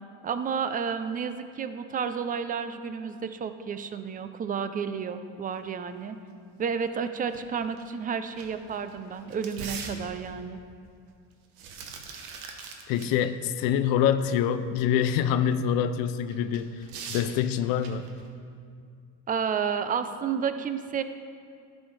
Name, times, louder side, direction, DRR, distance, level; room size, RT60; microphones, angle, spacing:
voice 1, 0.2-6.2 6.6-10.6 19.3-21.0, right 6 dB, 25° right, 10 dB, 0.4 m, -31 dB
sound 1, 7.3-7.4 7.8-7.9 8.3-10.4 11.3-13.1 13.5-13.6 16.3-18.2, right 5 dB, 80° right, 1.0 m, -41 dB
voice 2, 12.9-16.8 17.1-18.1, left 9 dB, 75° left, 11 dB, 0.5 m, -25 dB
11.5 x 6.3 x 3.2 m, 2.3 s
supercardioid pair, 100°, 35 cm